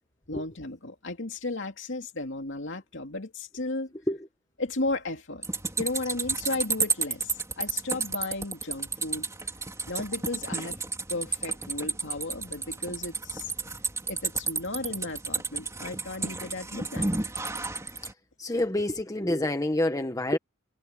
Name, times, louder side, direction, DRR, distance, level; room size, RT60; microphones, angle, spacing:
voice 1, 0.3-3.9 4.6-5.4 5.8-9.3 9.9-10.8 11.1-13.5 14.1-17.1, left 2 dB, 60° left, 2.8 m, -34 dB
sound 1, 5.4-18.1, right 4 dB, 15° right, 3.6 m, -32 dB
voice 2, 18.4-20.4, left 1 dB, 15° left, 1.2 m, -27 dB
head